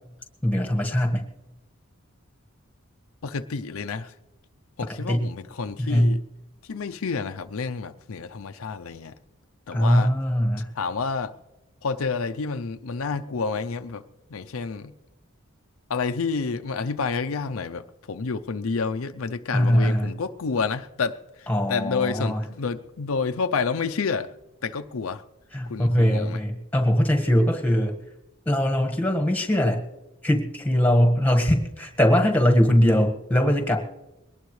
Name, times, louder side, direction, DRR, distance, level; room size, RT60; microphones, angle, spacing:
voice 1, 0.4-1.2 5.0-5.3 5.8-6.2 9.7-10.7 19.5-20.1 21.5-22.4 25.5-27.9 28.4-29.8 30.2-33.8, equal, 5° left, 1.5 m, -21 dB
voice 2, 3.2-4.1 4.8-6.2 6.7-9.1 9.7-10.1 10.8-11.3 11.8-14.0 14.3-14.9 15.9-24.3 24.6-25.2 25.7-26.4, left 5 dB, 85° left, 0.6 m, -29 dB
21.5 x 18.5 x 3.2 m
head